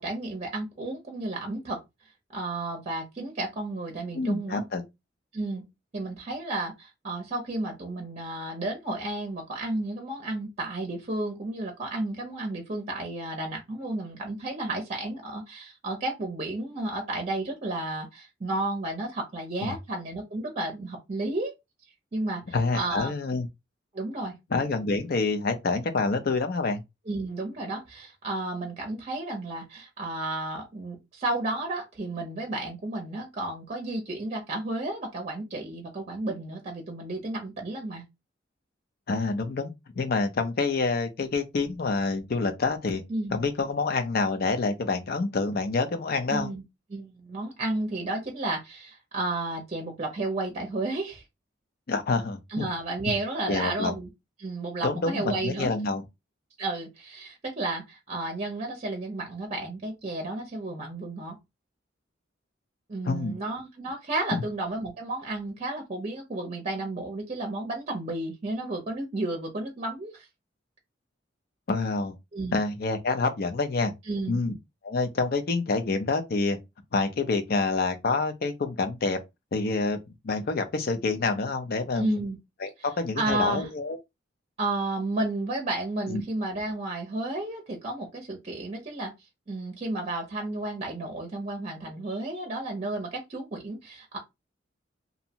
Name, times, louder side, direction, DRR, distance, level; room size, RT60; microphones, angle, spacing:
voice 1, 0.0-1.8 2.3-4.6 5.3-5.7 5.9-21.5 22.1-23.1 23.9-24.4 27.1-38.0 43.1-43.3 46.3-46.6 46.9-51.2 52.5-54.1 54.4-55.7 56.6-61.4 62.9-70.3 72.3-72.6 74.1-74.4 81.9-82.4 83.2-83.7 84.6-89.1 89.5-94.2, right 2 dB, 35° right, 0.6 m, -32 dB
voice 2, 4.1-4.8 19.6-19.8 22.5-23.5 24.5-26.8 39.1-43.0 43.3-46.5 51.9-52.7 53.5-53.9 54.8-56.0 63.0-63.4 64.3-64.4 71.7-72.1 72.5-73.9 74.3-74.5 74.8-76.6 76.9-79.2 79.5-80.0 80.2-82.2 82.6-84.0 86.1-86.2, left 3 dB, 55° left, 0.5 m, -27 dB
2.6 x 2.1 x 2.7 m
head